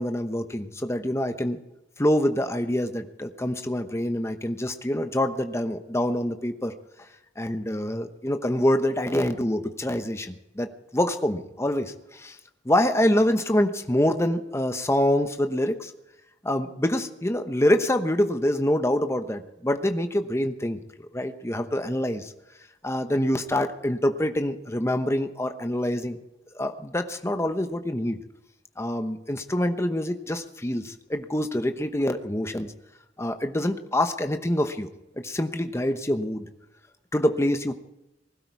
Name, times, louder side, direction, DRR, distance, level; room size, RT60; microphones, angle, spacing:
voice 1, 0.0-1.6 2.0-6.7 7.4-12.4 12.6-15.9 16.4-22.3 22.8-26.2 26.5-28.2 28.8-32.7 33.2-34.9 35.2-36.5 37.1-37.7, left 1 dB, 15° left, 7 dB, 1.0 m, -26 dB
20.0 x 12.5 x 4.7 m, 0.91 s
head